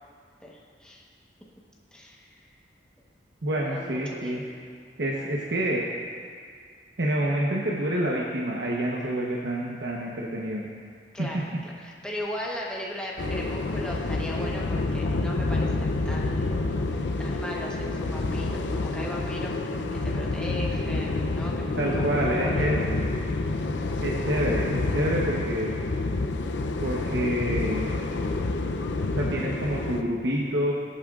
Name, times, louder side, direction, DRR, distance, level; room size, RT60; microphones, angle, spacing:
voice 1, 0.4-1.1 1.9-2.5 3.6-4.5 11.1-16.6 17.2-19.6 19.9-22.7, left 1 dB, 5° left, -4 dB, 1.1 m, -38 dB
voice 2, 3.4-4.4 5.0-5.8 7.0-10.7 11.2-11.4 21.8-22.8 24.0-25.7 26.8-27.9 29.1-30.7, right 1 dB, 70° right, -3 dB, 1.1 m, -27 dB
sound 1, 13.2-30.0, left 2 dB, 85° left, 0.6 m, -28 dB
20.5 x 8.6 x 2.5 m, 2.1 s
head